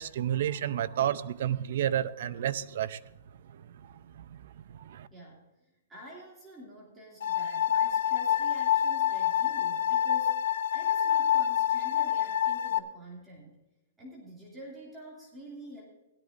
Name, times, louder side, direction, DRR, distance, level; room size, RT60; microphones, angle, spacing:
voice 1, 0.0-3.0 3.5-5.1, right 10 dB, 55° right, 15 dB, 0.6 m, -31 dB
voice 2, 5.1-5.5 5.9-13.6 14.0-15.8, equal, 10° right, -4 dB, 2.6 m, -47 dB
sound 1, 7.2-12.8, left 10 dB, 70° left, 0.6 m, -27 dB
17.0 x 13.0 x 2.6 m, 0.99 s
hypercardioid pair, 160°, 0 cm